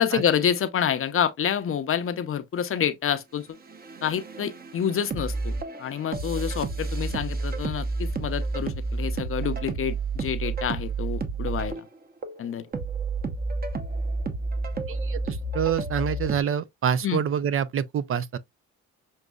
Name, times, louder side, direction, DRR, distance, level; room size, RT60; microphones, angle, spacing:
voice 1, 0.0-3.5 4.0-5.5 5.8-11.9 12.4-12.7 17.0-17.2, left 8 dB, 45° left, 0.6 m, -27 dB
sound 1, 3.7-16.4, right 3 dB, 30° right, 0.9 m, -30 dB
voice 2, 14.9-18.4, right 8 dB, 45° right, 0.5 m, -27 dB
6.3 x 2.6 x 2.3 m
cardioid pair, 90°, 30 cm